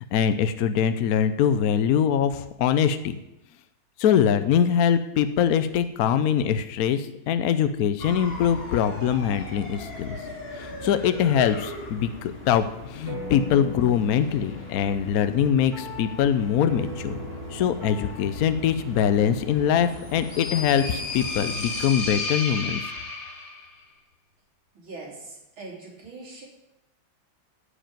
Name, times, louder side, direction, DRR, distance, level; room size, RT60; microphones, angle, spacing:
voice 1, 0.1-3.1 4.0-10.2 10.5-17.1 17.5-22.9, left 8 dB, 75° left, 10 dB, 0.8 m, -23 dB
sound 1, 8.0-22.1, left 2 dB, 30° left, 2.1 m, -40 dB
sound 2, 13.1-21.8, equal, 50° right, 2.2 m, -41 dB
sound 3, 19.9-23.7, left 3 dB, 45° left, 2.4 m, -32 dB
voice 2, 24.7-26.4, right 3 dB, 75° right, -4 dB, 4.5 m, -41 dB
14.5 x 5.1 x 9.0 m, 0.92 s
omnidirectional pair, 2.2 m